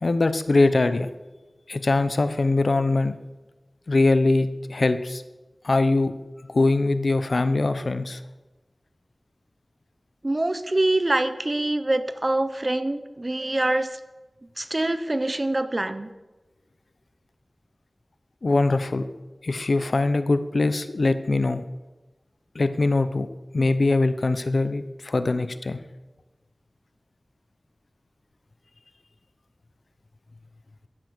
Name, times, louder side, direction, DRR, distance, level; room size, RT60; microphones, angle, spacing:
voice 1, 0.0-1.1 1.7-3.2 3.9-5.2 5.6-6.1 6.5-8.2 18.4-19.1 19.4-21.6 22.5-23.3 23.5-25.8, left 2 dB, 70° left, 12 dB, 0.9 m, -22 dB
voice 2, 10.2-14.0 14.6-16.1, right 1 dB, 35° right, 11 dB, 1.0 m, -25 dB
15.0 x 10.0 x 6.5 m, 1.1 s
wide cardioid pair, 65°, 0 cm